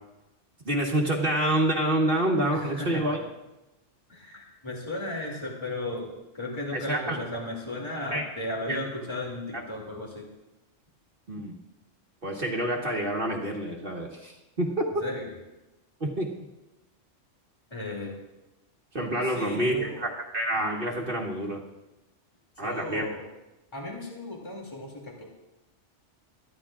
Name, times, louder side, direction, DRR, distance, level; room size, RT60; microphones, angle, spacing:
voice 1, 0.6-3.2 6.7-7.2 8.1-8.2 8.7-8.8 11.3-11.5 12.2-14.8 16.0-16.3 18.9-21.6 22.6-23.1, right 1 dB, 50° right, -1 dB, 1.7 m, -27 dB
voice 2, 2.5-3.1 4.1-10.3 15.0-15.3 17.7-18.2 19.2-20.1 22.6-23.2 23.7-25.3, left 1 dB, 20° left, -2 dB, 2.7 m, -35 dB
23.5 x 14.0 x 2.5 m, 0.98 s
omnidirectional pair, 1.3 m